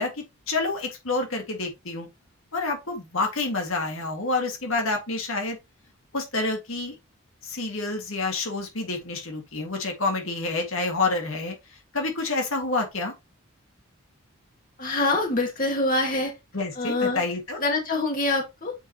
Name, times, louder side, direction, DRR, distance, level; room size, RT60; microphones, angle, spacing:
voice 1, 0.0-2.1 2.5-5.6 6.1-7.0 7.4-13.1 16.5-17.6, left 3 dB, 70° left, 1.8 m, -28 dB
voice 2, 14.8-16.3 16.8-17.2 17.6-18.7, left 2 dB, 40° left, 1.6 m, -25 dB
7.9 x 4.5 x 2.8 m
head